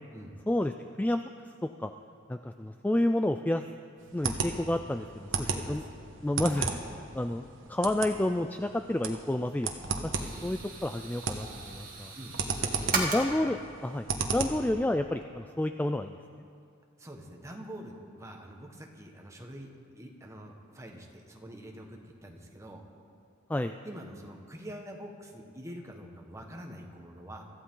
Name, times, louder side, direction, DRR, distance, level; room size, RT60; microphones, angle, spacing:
voice 1, 2.3-3.6 4.1-5.3 5.7-5.8 6.2-9.9 10.2-12.1 12.9-14.0 14.3-16.1 23.5-23.7, left 1 dB, 10° left, 7 dB, 0.3 m, -30 dB
sound 1, 4.0-14.7, right 4 dB, 75° right, 1.3 m, -35 dB
voice 2, 5.3-5.9 12.1-12.9 17.0-22.8 23.8-27.4, equal, 15° right, 1 dB, 1.5 m, -45 dB
sound 2, 10.1-13.2 14.4-14.7 15.1-15.2, right 4 dB, 45° right, 2.3 m, -36 dB
24.0 x 14.5 x 3.9 m, 2.3 s
head